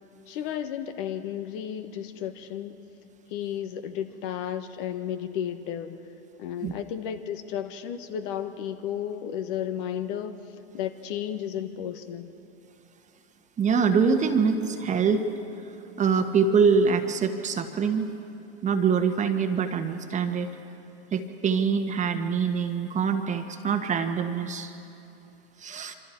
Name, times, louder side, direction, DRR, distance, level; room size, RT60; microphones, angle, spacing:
voice 1, 0.3-2.8 3.3-6.0 6.4-10.4 10.7-12.3, left 9 dB, 55° left, 8 dB, 1.5 m, -33 dB
voice 2, 13.6-15.3 16.0-18.1 18.6-20.5 21.1-24.7 25.6-26.0, right 6 dB, 20° right, 6 dB, 1.5 m, -24 dB
26.0 x 25.5 x 4.5 m, 2.8 s
hypercardioid pair, 110°, 32 cm